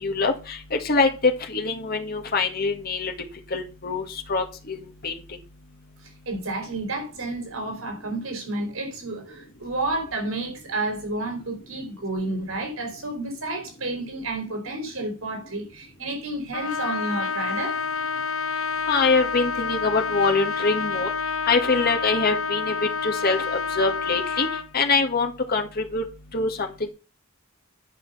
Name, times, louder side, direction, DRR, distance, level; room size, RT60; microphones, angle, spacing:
voice 1, 0.0-3.1 3.5-4.0 4.3-5.1 18.9-21.1 21.5-22.7 23.0-24.5 24.7-26.0 26.3-26.9, left 4 dB, 50° left, 1.8 m, -24 dB
voice 2, 6.3-17.8, right 2 dB, 85° right, 3.8 m, -30 dB
Trumpet, 16.5-24.7, left 5 dB, 80° left, 0.8 m, -28 dB
10.0 x 5.4 x 5.6 m
head